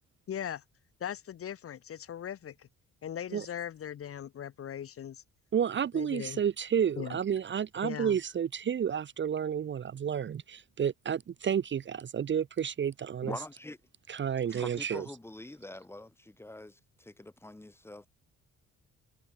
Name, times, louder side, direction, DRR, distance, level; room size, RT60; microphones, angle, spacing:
voice 1, 0.3-0.6 1.0-2.7 3.0-5.2 5.9-6.4 7.0-7.2 7.8-8.2, left 9 dB, 50° left, 0.9 m, -39 dB
voice 2, 5.5-13.4 14.1-15.1, right 8 dB, 40° right, 0.7 m, -31 dB
voice 3, 13.2-13.8 14.5-18.1, left 1 dB, 10° left, 1.2 m, -44 dB
cardioid pair, 90°, 30 cm